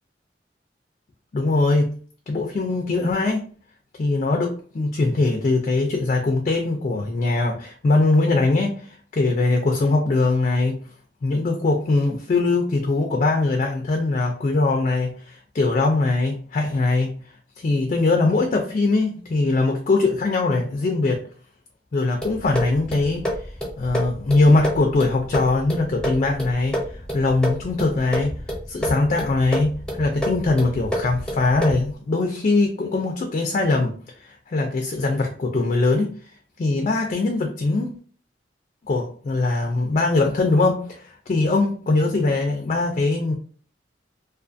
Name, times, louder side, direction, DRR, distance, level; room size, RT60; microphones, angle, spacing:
voice 1, 1.3-2.0 2.3-3.4 4.0-10.8 11.2-17.2 17.6-21.2 21.9-23.3 23.8-28.4 28.7-34.0 34.2-36.1 36.6-37.9 38.9-43.3, left 3 dB, 45° left, 2 dB, 0.3 m, -21 dB
sound 1, 22.2-31.9, equal, 5° left, 0.6 m, -29 dB
2.4 x 2.4 x 2.5 m, 0.43 s
head